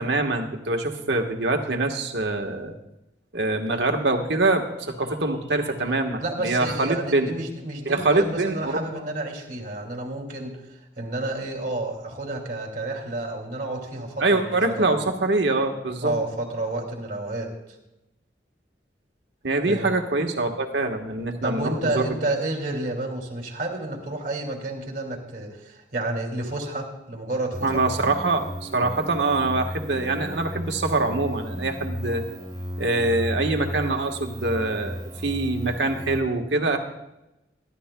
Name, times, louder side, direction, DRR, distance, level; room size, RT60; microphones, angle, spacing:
voice 1, 0.0-2.7 3.3-7.3 7.8-8.8 14.2-16.1 19.4-22.1 27.6-32.2 32.8-36.8, right 2 dB, 75° right, 4 dB, 1.3 m, -24 dB
voice 2, 6.2-15.0 16.0-17.5 19.6-19.9 21.4-27.7, right 2 dB, 45° right, 0 dB, 2.4 m, -30 dB
sound 1, 27.5-36.2, equal, 20° right, 0.9 m, -34 dB
24.0 x 11.5 x 2.2 m, 0.92 s
head